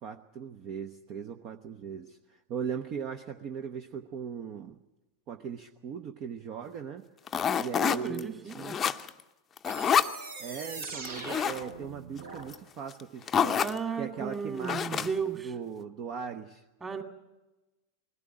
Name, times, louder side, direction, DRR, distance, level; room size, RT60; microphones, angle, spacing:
voice 1, 0.0-4.8 5.3-7.0 7.6-8.8 10.4-13.6 14.0-15.1 15.4-16.6, right 7 dB, 35° right, 6 dB, 0.9 m, -39 dB
sound 1, 7.3-8.2 8.5-9.2 9.6-10.2 11.0-11.6 12.5-12.6 12.9-13.0 13.3-13.8 14.6-15.3, left 8 dB, 20° left, 0.7 m, -27 dB
voice 2, 7.8-8.6 13.5-15.5 16.8-17.0, right 6 dB, 15° right, 5 dB, 2.1 m, -34 dB
sound 2, 9.6-12.5, right 4 dB, 65° right, 3.8 m, -42 dB
20.5 x 16.0 x 8.9 m, 1.1 s
figure-of-eight pair, 90°, 0 cm